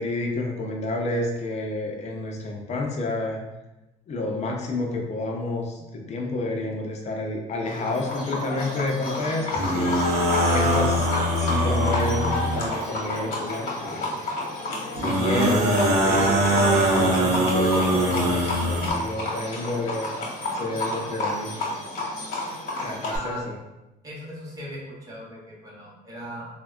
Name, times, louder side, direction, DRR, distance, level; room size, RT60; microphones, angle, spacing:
voice 1, 0.0-3.4 4.1-10.1 10.5-11.1 11.4-14.2 14.9-20.1 20.5-21.6 22.8-23.6, left 2 dB, 40° left, 1 dB, 0.6 m, -30 dB
Livestock farm animals working animals, 7.7-23.2, left 2 dB, 60° left, 0.9 m, -31 dB
sound 1, 9.5-12.9 15.0-18.9, right 1 dB, 80° right, 0.6 m, -22 dB
voice 2, 23.1-23.4 24.0-26.5, equal, 20° right, -6 dB, 0.9 m, -38 dB
3.3 x 2.1 x 2.4 m, 0.99 s
cardioid pair, 110°, 17 cm